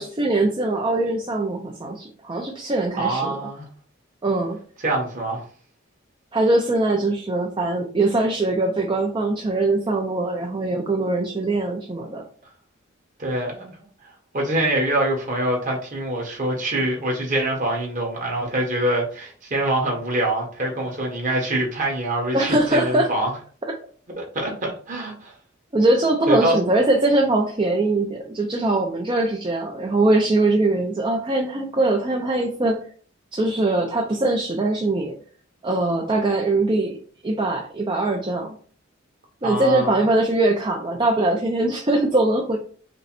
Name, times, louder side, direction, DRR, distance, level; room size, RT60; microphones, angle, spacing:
voice 1, 0.0-3.4 4.2-4.6 6.3-12.2 22.3-23.1 25.7-32.8 33.3-35.2 35.6-37.0 37.2-38.5 39.4-42.6, right 2 dB, 25° right, 0.5 m, -22 dB
voice 2, 3.0-3.7 4.8-5.4 13.2-13.7 14.3-23.3 24.2-25.3 26.3-26.6 39.4-39.9, right 1 dB, 40° right, 1.5 m, -24 dB
5.2 x 2.2 x 4.2 m
head